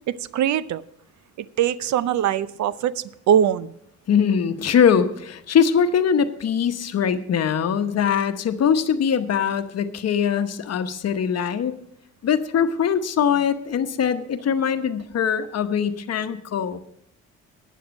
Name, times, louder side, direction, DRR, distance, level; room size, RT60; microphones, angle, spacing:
voice 1, 0.3-0.8 1.4-3.7, right 9 dB, 70° right, 17 dB, 0.6 m, -22 dB
voice 2, 4.1-11.7 12.2-16.8, left 7 dB, 55° left, 10 dB, 1.0 m, -22 dB
11.5 x 9.3 x 5.2 m, 0.71 s
cardioid pair, 90°, 30 cm